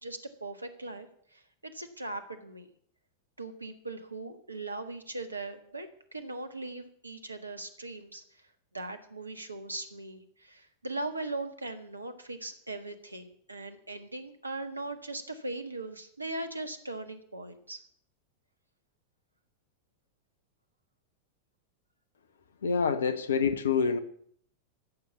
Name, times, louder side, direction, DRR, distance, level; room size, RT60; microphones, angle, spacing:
voice 1, 0.0-2.7 3.4-8.2 8.7-17.8, right 2 dB, 80° right, 9 dB, 1.5 m, -39 dB
voice 2, 22.6-24.0, left 5 dB, 65° left, 12 dB, 1.2 m, -26 dB
14.0 x 7.6 x 8.3 m, 0.63 s
figure-of-eight pair, 90°, 0 cm